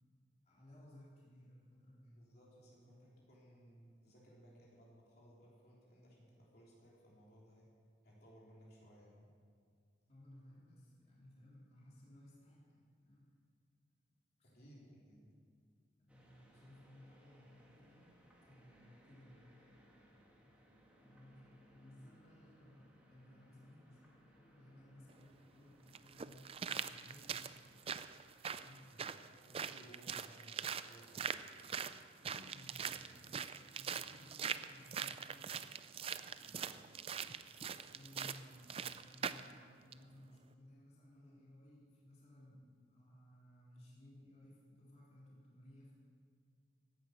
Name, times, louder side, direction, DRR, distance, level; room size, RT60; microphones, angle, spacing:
voice 1, 0.4-2.3 2.6-2.9 10.1-13.3 14.4-15.3 16.0-18.1 18.4-19.5 20.4-27.7 28.6-28.9 32.2-35.5 35.8-36.1 36.4-37.0 37.7-46.0, left 1 dB, 35° left, -6 dB, 3.3 m, -60 dB
voice 2, 2.1-7.7 8.0-9.3 14.4-15.3 28.9-31.5, equal, 55° left, -5 dB, 3.3 m, -61 dB
sound 1, 16.1-28.4, right 1 dB, 5° right, 1.8 m, -67 dB
sound 2, 25.1-25.2 25.9-39.5 39.9-40.0, right 7 dB, 30° right, 0.4 m, -43 dB
15.5 x 10.0 x 6.5 m, 2.1 s
head